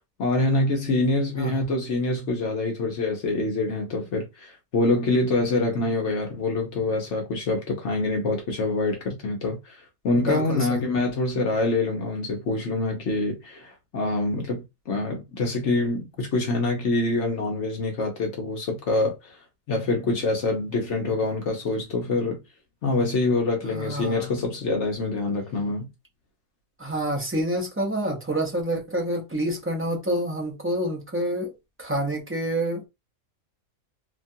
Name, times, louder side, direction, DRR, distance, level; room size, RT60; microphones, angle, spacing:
voice 1, 0.2-9.8 10.0-19.4 19.7-22.4 22.8-25.9, left 2 dB, 60° left, 1.0 m, -25 dB
voice 2, 10.1-10.8 23.7-24.3 26.8-31.5 31.8-32.9, right 1 dB, 15° right, 0.5 m, -28 dB
2.9 x 2.3 x 2.6 m
omnidirectional pair, 1.5 m